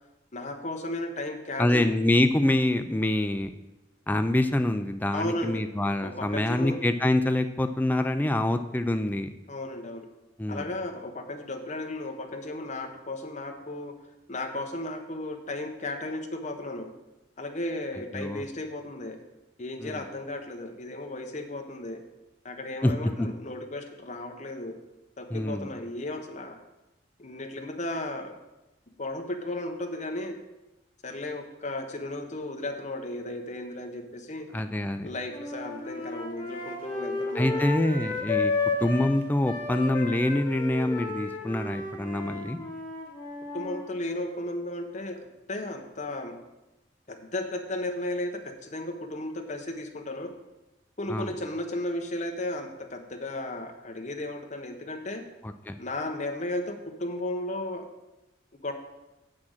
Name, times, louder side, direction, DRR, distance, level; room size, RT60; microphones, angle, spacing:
voice 1, 0.3-1.9 5.1-5.6 6.0-6.8 9.5-10.1 10.5-13.9 14.3-16.9 17.4-19.2 19.6-22.0 22.4-24.8 25.2-26.6 27.2-28.3 29.0-30.4 31.0-34.5 35.0-37.6 43.5-46.4 47.1-50.3 51.0-55.2 55.8-57.8 58.6-58.7, left 1 dB, 40° left, 3 dB, 1.0 m, -34 dB
voice 2, 1.6-3.5 4.1-9.3 10.4-10.7 18.1-18.4 19.8-20.0 22.8-22.9 23.2-23.3 25.3-25.7 34.5-35.1 37.4-38.5 38.8-42.6 51.1-51.3 55.7-55.8, left 1 dB, 10° left, 7 dB, 0.4 m, -25 dB
sound 1, 35.3-39.1 39.4-43.8, left 3 dB, 25° left, 1.9 m, -32 dB
7.5 x 6.0 x 6.5 m, 1.0 s
head